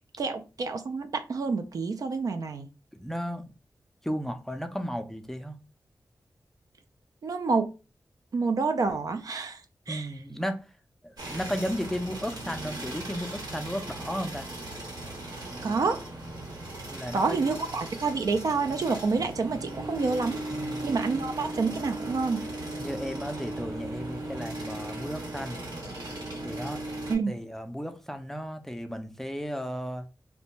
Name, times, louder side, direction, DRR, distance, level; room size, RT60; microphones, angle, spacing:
voice 1, 0.2-2.7 7.2-7.7 8.3-9.6 9.9-10.1 15.6-16.0 17.1-20.4 20.8-22.4 27.1-27.4, right 4 dB, 60° right, 0.3 m, -28 dB
voice 2, 3.0-3.5 4.0-5.6 9.9-10.6 11.0-14.5 16.9-17.5 20.5-20.9 22.8-25.6 26.4-26.8 27.3-30.0, equal, 5° left, 0.4 m, -34 dB
sound 1, 11.2-27.2, right 1 dB, 90° right, 1.0 m, -37 dB
2.5 x 2.1 x 3.0 m
wide cardioid pair, 85°, 7 cm